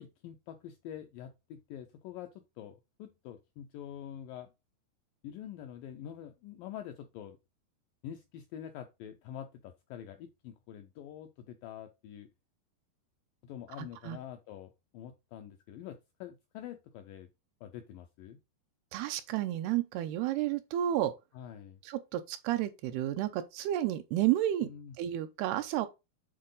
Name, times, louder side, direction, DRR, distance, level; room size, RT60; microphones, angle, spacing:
voice 1, 0.0-2.3 2.6-4.5 5.2-7.4 8.0-12.3 13.4-17.3 17.6-18.4 21.3-21.8 24.6-25.0, left 10 dB, 85° left, 1.9 m, -46 dB
voice 2, 18.9-21.1 21.8-24.7 25.0-25.9, right 13 dB, 85° right, 2.5 m, -31 dB
8.7 x 4.0 x 3.8 m
omnidirectional pair, 4.7 m